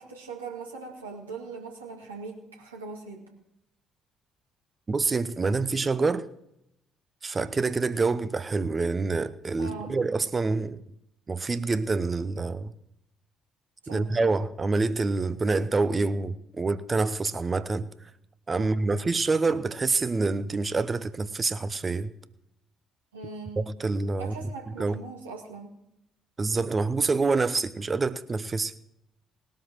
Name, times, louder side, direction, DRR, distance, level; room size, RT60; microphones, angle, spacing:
voice 1, 0.0-3.4 9.6-10.0 13.8-14.1 18.6-19.1 23.1-23.7 24.2-25.7, right 4 dB, 80° right, 2.2 m, -41 dB
voice 2, 4.9-6.3 7.2-10.8 11.3-12.7 13.9-17.9 18.5-22.1 23.6-24.3 24.8-25.0 26.4-28.7, right 3 dB, 30° right, 0.8 m, -26 dB
20.0 x 12.5 x 3.0 m
figure-of-eight pair, 45°, 0 cm